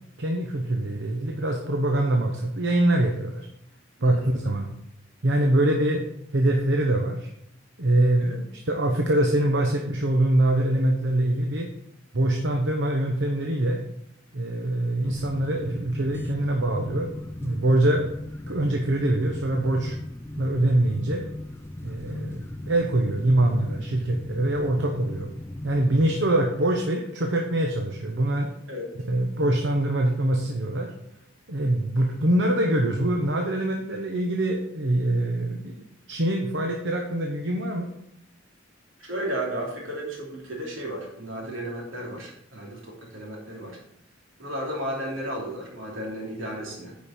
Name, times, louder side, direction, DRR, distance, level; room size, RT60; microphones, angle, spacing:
voice 1, 0.2-3.5 4.0-4.7 5.2-6.1 6.3-7.3 7.8-11.7 12.1-13.8 14.3-18.1 18.5-20.0 20.4-21.2 21.8-25.3 25.6-28.5 29.1-30.9 31.5-35.7 36.1-37.9, right 1 dB, 70° right, 2 dB, 0.9 m, -24 dB
voice 2, 4.0-4.3 8.2-8.4 28.7-28.9 39.0-43.8 44.4-47.0, right 1 dB, 85° right, -2 dB, 2.8 m, -34 dB
sound 1, 15.0-26.2, left 1 dB, 15° left, 0.3 m, -37 dB
9.5 x 5.3 x 4.3 m, 0.73 s
head